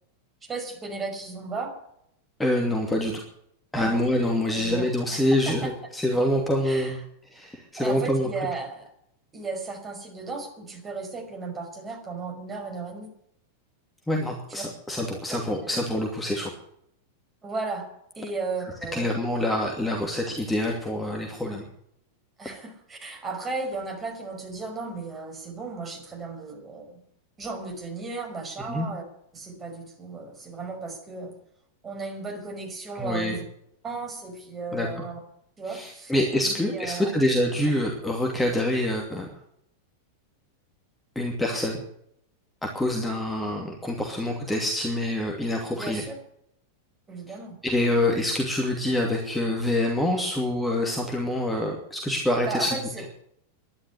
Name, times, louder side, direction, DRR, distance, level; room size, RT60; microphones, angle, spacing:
voice 1, 0.4-1.7 3.7-4.0 4.5-5.7 6.6-7.0 7.8-8.9 9.3-13.1 14.5-14.6 15.3-15.8 17.4-17.9 18.1-19.1 22.4-27.0 27.4-29.0 29.3-31.3 31.8-33.4 33.8-35.2 35.6-36.1 36.4-37.2 45.7-46.2 47.1-47.6 47.9-48.0 52.5-53.0, right 3 dB, 20° right, 2 dB, 5.6 m, -35 dB
voice 2, 2.4-3.1 3.7-7.0 7.3-8.3 14.1-16.5 18.9-21.7 28.7-28.9 33.0-33.4 34.7-34.9 35.7-39.3 41.1-41.8 42.6-46.0 47.6-52.7, left 1 dB, 5° left, 0 dB, 2.6 m, -26 dB
12.0 x 11.5 x 9.4 m, 0.73 s
figure-of-eight pair, 90°, 0 cm